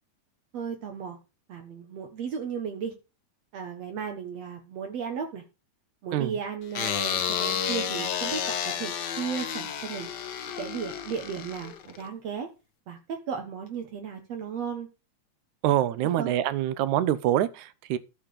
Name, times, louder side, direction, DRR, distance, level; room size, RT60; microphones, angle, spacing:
voice 1, 0.5-1.2 1.5-2.9 3.5-5.4 6.0-10.1 10.6-12.5 12.9-14.9 16.2-16.3, right 6 dB, 65° right, 2.4 m, -35 dB
sound 1, 6.7-12.1, left 8 dB, 60° left, 1.1 m, -31 dB
voice 2, 15.6-18.0, right 12 dB, 85° right, 2.3 m, -25 dB
13.0 x 5.0 x 6.5 m
omnidirectional pair, 3.3 m